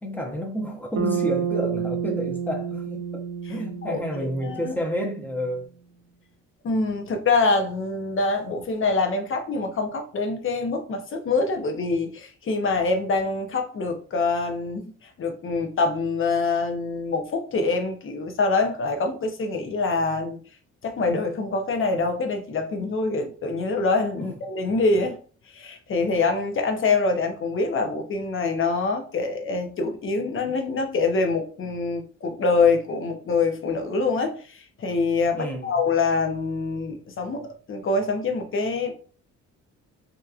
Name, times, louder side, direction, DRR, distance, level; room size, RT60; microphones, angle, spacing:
voice 1, 0.0-3.2 3.5-5.7 24.2-24.3 35.3-35.8, equal, 5° left, 0.7 m, -30 dB
Bass guitar, 1.0-5.3, right 7 dB, 70° right, 0.6 m, -30 dB
voice 2, 4.4-4.7 6.6-20.4 20.8-25.2 25.5-38.9, left 3 dB, 45° left, 0.7 m, -25 dB
2.8 x 2.4 x 2.4 m
cardioid pair, 90°, 30 cm